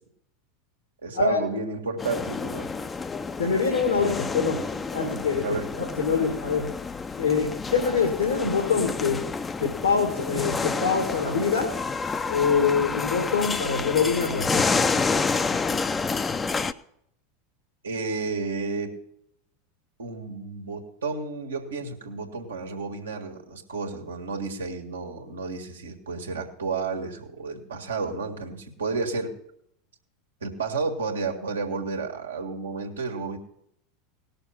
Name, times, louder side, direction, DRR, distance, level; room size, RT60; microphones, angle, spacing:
voice 1, 1.0-2.7 5.4-5.7 17.8-19.0 20.0-29.3 30.4-33.4, right 4 dB, 80° right, 3 dB, 1.7 m, -31 dB
sound 1, 2.0-16.7, left 4 dB, 20° left, 0.6 m, -29 dB
voice 2, 3.4-4.6 4.9-5.4 6.0-6.7 7.2-9.2 9.6-11.7 12.3-14.7, left 5 dB, 85° left, 1 dB, 2.1 m, -24 dB
18.0 x 6.6 x 5.7 m, 0.72 s
figure-of-eight pair, 85°, 0 cm